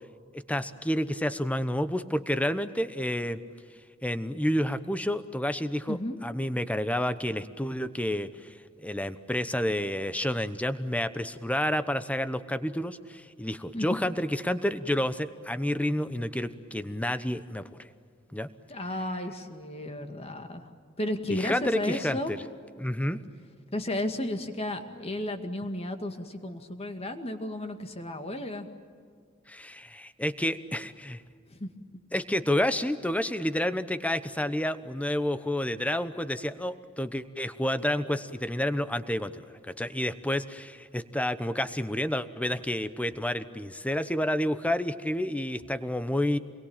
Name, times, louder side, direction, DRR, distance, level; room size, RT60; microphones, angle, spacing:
voice 1, 0.3-3.4 4.0-6.0 6.2-17.9 18.3-18.5 21.3-22.4 22.8-23.2 29.5-31.2 32.1-46.4, left 1 dB, 5° left, 12 dB, 1.0 m, -30 dB
voice 2, 5.9-6.2 13.7-13.9 18.7-20.7 21.0-22.3 23.7-28.7 31.5-31.7, left 1 dB, 30° left, 6 dB, 2.1 m, -33 dB
28.0 x 22.0 x 9.0 m, 2.1 s
head